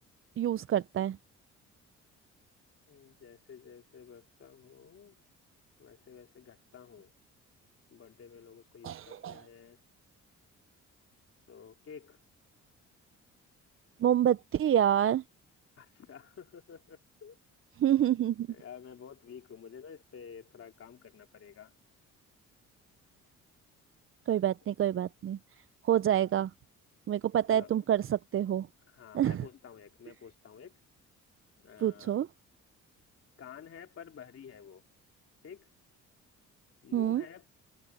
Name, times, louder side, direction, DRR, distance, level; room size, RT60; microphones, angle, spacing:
voice 1, 0.4-1.2 8.8-9.4 14.0-15.2 17.8-18.5 24.3-25.4 25.8-26.5 27.1-28.7 29.1-29.4 31.8-32.3 36.9-37.2, right 10 dB, 45° right, 0.5 m, -27 dB
voice 2, 2.9-5.2 5.8-7.1 7.9-9.8 11.5-12.2 15.8-17.4 18.5-21.8 26.0-26.3 27.5-27.8 28.9-30.8 31.6-32.2 33.4-34.8 35.4-35.7 36.8-37.5, left 7 dB, 50° left, 2.6 m, -51 dB
cardioid pair, 90°, 30 cm